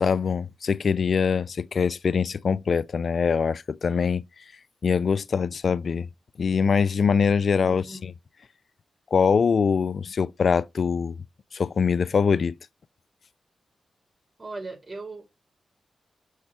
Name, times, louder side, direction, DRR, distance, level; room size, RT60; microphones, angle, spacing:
voice 1, 0.0-4.4 4.8-6.1 6.4-8.1 9.1-11.2 11.5-12.6, left 6 dB, 65° left, 0.4 m, -23 dB
voice 2, 7.6-8.1 14.4-15.4, right 3 dB, 40° right, 5.8 m, -39 dB
6.4 x 6.4 x 4.2 m
cardioid pair, 50°, 0 cm